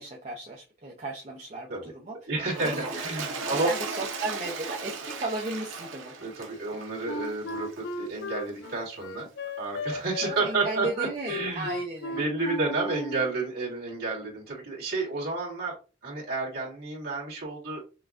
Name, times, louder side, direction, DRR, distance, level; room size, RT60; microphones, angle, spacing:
voice 1, 0.0-3.0 3.5-6.1 10.2-12.2, right 2 dB, 35° right, -1 dB, 0.6 m, -35 dB
voice 2, 2.3-3.7 6.2-9.3 9.6-11.7 12.2-15.8 16.0-17.8, right 3 dB, 50° right, -4 dB, 1.9 m, -31 dB
Toilet flush, 2.4-7.9 8.6-8.7, right 4 dB, 75° right, 0.7 m, -36 dB
Wind instrument woodwind instrument, 7.1-13.4, left 2 dB, 55° left, 0.4 m, -36 dB
5.7 x 2.3 x 2.5 m, 0.32 s
head